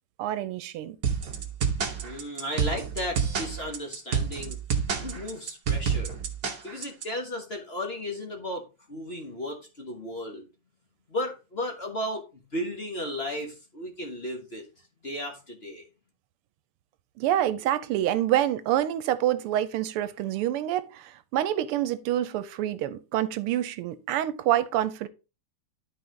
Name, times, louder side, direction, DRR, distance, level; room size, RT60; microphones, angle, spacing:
voice 1, 0.2-1.0 17.2-25.1, right 12 dB, 85° right, 1.6 m, -27 dB
sound 1, 1.0-7.0, right 6 dB, 50° right, 1.5 m, -28 dB
voice 2, 2.0-4.6 5.0-6.2 6.6-8.6 8.9-10.5 11.1-12.2 12.5-14.6 15.0-15.9, left 1 dB, 35° left, 1.2 m, -34 dB
11.0 x 4.6 x 3.8 m
omnidirectional pair, 2.4 m